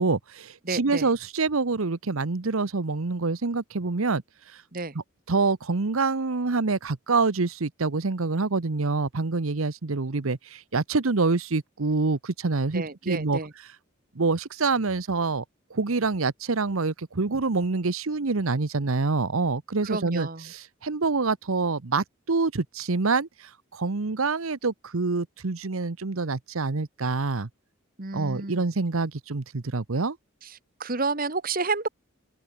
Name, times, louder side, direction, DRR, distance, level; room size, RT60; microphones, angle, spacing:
voice 1, 0.0-4.2 4.5-4.6 5.3-13.4 14.2-15.4 15.7-27.5 28.1-30.2, right 3 dB, 85° right, 1.0 m, -26 dB
voice 2, 0.6-1.1 4.7-4.9 12.7-13.5 19.8-20.5 28.0-28.6 30.4-31.9, right 3 dB, 45° right, 1.6 m, -30 dB
open air
head